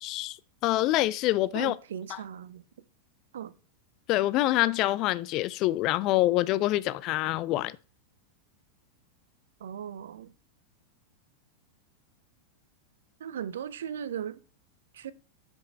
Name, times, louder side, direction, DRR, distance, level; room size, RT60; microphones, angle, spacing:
voice 1, 0.0-1.8 2.1-2.2 4.1-7.8, left 16 dB, 40° left, 0.4 m, -26 dB
voice 2, 1.5-2.6 3.3-3.5 9.6-10.3 13.2-14.4 14.9-15.1, right 9 dB, 60° right, 0.5 m, -37 dB
6.9 x 5.3 x 4.8 m
figure-of-eight pair, 90°, 0 cm